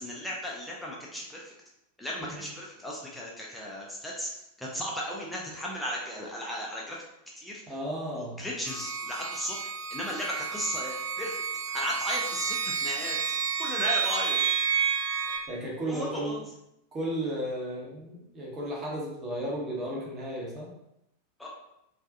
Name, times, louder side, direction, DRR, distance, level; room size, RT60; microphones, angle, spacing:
voice 1, 0.0-1.5 2.0-4.3 4.6-7.0 7.4-7.6 8.1-9.6 9.9-11.3 11.7-13.2 13.6-14.4 15.9-16.4 21.4-21.5, equal, 5° left, -4 dB, 0.5 m, -35 dB
voice 2, 7.7-8.4 15.2-16.4 16.9-20.7, right 1 dB, 25° right, -3 dB, 0.9 m, -34 dB
sound 1, 8.7-15.4, right 6 dB, 55° right, 0.4 m, -30 dB
2.4 x 2.3 x 2.5 m, 0.83 s
figure-of-eight pair, 90°, 0 cm